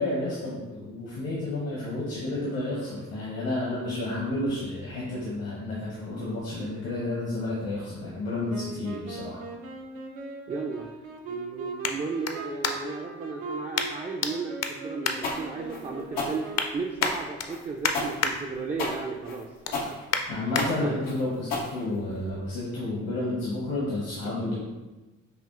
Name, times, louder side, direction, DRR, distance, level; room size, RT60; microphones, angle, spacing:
voice 1, 0.0-9.4 20.3-24.5, left 2 dB, 70° left, -6 dB, 1.0 m, -31 dB
Wind instrument woodwind instrument, 8.5-16.9, right 3 dB, 75° right, 0.6 m, -39 dB
sound 1, 9.6-13.1 13.7-14.3 14.6-15.9 16.3-16.7 17.0-18.3 18.8-19.0 19.4-20.7 21.2-21.3, left 6 dB, 45° left, 0.5 m, -31 dB
voice 2, 10.5-10.9 11.2-20.5 20.8-21.0, right 4 dB, 20° right, 0 dB, 0.3 m, -35 dB
sound 2, 15.2-22.3, left 3 dB, 90° left, 0.6 m, -32 dB
4.9 x 2.6 x 2.4 m, 1.1 s
hypercardioid pair, 45°, 36 cm